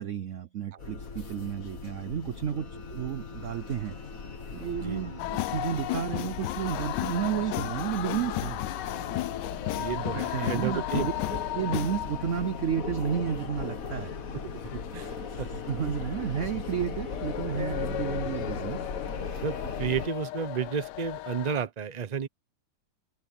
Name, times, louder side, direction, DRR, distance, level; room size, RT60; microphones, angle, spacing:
voice 1, 0.0-4.0 4.5-8.6 9.8-11.1 11.5-14.1 15.1-18.9, right 8 dB, 60° right, 0.9 m, -32 dB
sound 1, 0.8-20.1, left 5 dB, 55° left, 2.0 m, -38 dB
voice 2, 4.8-5.2 9.7-11.1 14.3-15.6 19.4-22.3, right 6 dB, 30° right, 0.9 m, -32 dB
sound 2, 5.2-21.6, left 14 dB, 80° left, 1.2 m, -35 dB
omnidirectional pair, 1.9 m